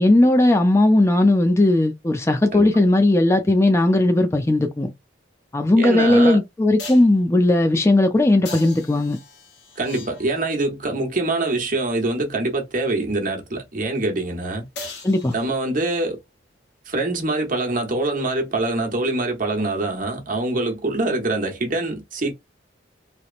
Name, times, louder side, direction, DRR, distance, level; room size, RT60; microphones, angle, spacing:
voice 1, 0.0-4.9 5.5-9.2 15.0-15.3, left 2 dB, 15° left, 0.4 m, -17 dB
sound 1, 5.7-5.8 6.8-7.2 8.4-10.6 14.8-15.9 19.7-19.8, left 3 dB, 70° left, 1.0 m, -39 dB
voice 2, 5.8-6.4 9.8-14.6 15.3-16.2 16.9-22.3, right 2 dB, 50° right, 0.9 m, -24 dB
2.9 x 2.0 x 2.4 m
head